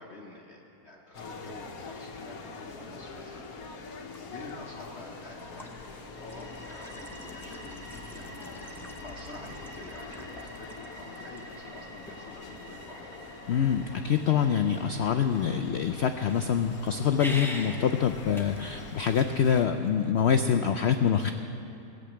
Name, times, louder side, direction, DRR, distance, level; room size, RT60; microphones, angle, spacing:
voice 1, 0.0-3.5 4.2-8.4 9.0-13.0, left 2 dB, 45° left, -2 dB, 1.2 m, -48 dB
sound 1, 1.1-19.7, left 4 dB, 65° left, 1.3 m, -44 dB
sound 2, 3.4-20.1, left 1 dB, ahead, 0.7 m, -47 dB
sound 3, 6.0-18.7, right 2 dB, 45° right, 2.2 m, -51 dB
voice 2, 13.5-21.3, left 7 dB, 90° left, 8 dB, 0.5 m, -25 dB
17.0 x 7.9 x 8.6 m, 2.8 s
omnidirectional pair, 1.7 m